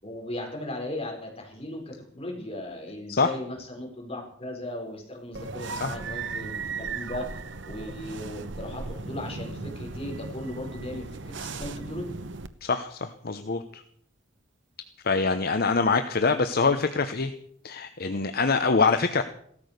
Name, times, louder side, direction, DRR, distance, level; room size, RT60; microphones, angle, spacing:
voice 1, 0.0-12.1, left 1 dB, 30° left, 0 dB, 4.7 m, -37 dB
sound 1, 5.3-12.5, right 4 dB, 70° right, 1.0 m, -36 dB
voice 2, 12.6-13.8 15.0-17.3 17.6-19.2, left 4 dB, 50° left, 9 dB, 0.9 m, -24 dB
16.0 x 13.5 x 6.7 m, 0.65 s
head